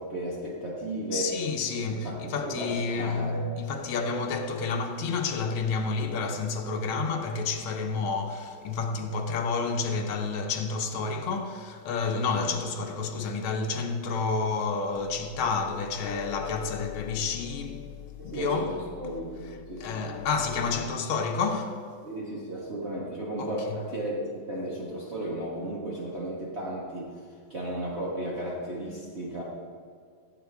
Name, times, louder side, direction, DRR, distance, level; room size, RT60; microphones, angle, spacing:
voice 1, 0.0-1.4 1.7-3.5 12.2-12.5 18.2-20.0 22.0-29.4, right 1 dB, 35° right, 1.6 m, -34 dB
voice 2, 1.1-17.9 18.2-18.7 19.8-21.8 23.4-23.8, left 4 dB, 90° left, 1.7 m, -30 dB
sound 1, 14.9-20.9, left 14 dB, 70° left, 1.2 m, -42 dB
16.5 x 8.4 x 3.5 m
omnidirectional pair, 2.2 m